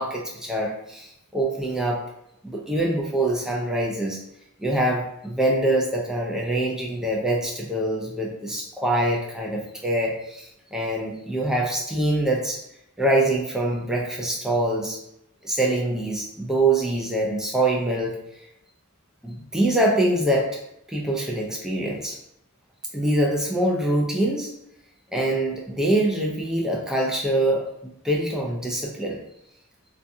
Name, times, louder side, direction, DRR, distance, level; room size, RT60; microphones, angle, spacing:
voice 1, 0.0-2.0 2.4-4.2 4.6-12.6 13.0-15.0 15.4-18.1 19.2-20.6 20.9-22.2 22.9-24.5 25.1-27.6 28.0-29.2, right 1 dB, 5° right, -3 dB, 0.4 m, -24 dB
2.5 x 2.3 x 2.6 m, 0.77 s
head